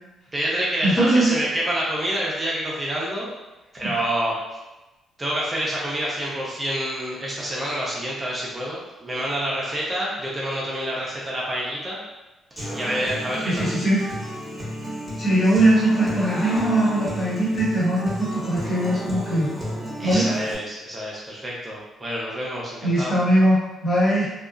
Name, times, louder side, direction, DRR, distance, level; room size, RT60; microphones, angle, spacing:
voice 1, 0.3-3.3 3.7-4.4 5.2-12.0 12.7-13.7 20.0-23.1, right 1 dB, 25° right, -5 dB, 0.7 m, -27 dB
voice 2, 0.8-1.3 3.8-3.9 13.4-14.0 15.2-19.5 20.0-20.3 22.8-24.3, right 1 dB, 45° left, -8 dB, 1.3 m, -20 dB
Human voice / Acoustic guitar, 12.6-20.5, equal, ahead, 1.2 m, -32 dB
2.6 x 2.3 x 2.5 m, 1.0 s
cardioid pair, 90°, 0 cm